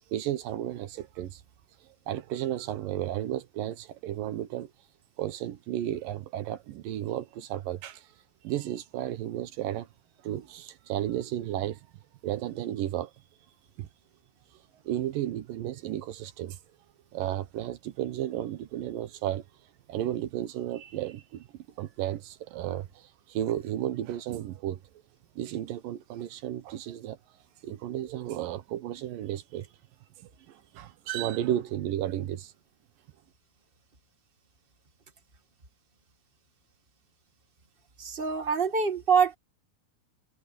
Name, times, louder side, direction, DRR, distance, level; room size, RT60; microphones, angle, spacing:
voice 1, 0.1-1.4 1.8-4.7 5.2-8.1 8.4-9.9 10.2-11.9 12.2-13.1 13.8-13.9 14.8-16.6 17.1-19.4 19.9-24.8 25.4-27.2 27.6-29.7 30.2-32.5, right 12 dB, 75° right, 2.5 m, -33 dB
voice 2, 38.0-39.3, right 6 dB, 40° right, 0.7 m, -25 dB
omnidirectional pair, 4.3 m